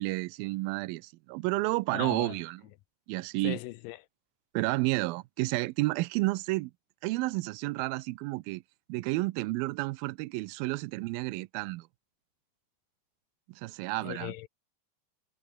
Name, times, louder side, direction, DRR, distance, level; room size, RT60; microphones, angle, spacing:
voice 1, 0.0-2.6 3.1-3.6 4.5-6.7 7.0-8.6 8.9-11.9 13.5-14.3, right 21 dB, 85° right, 2.4 m, -31 dB
voice 2, 1.9-2.4 3.4-4.0 14.0-14.5, left 18 dB, 80° left, 2.2 m, -38 dB
omnidirectional pair, 4.3 m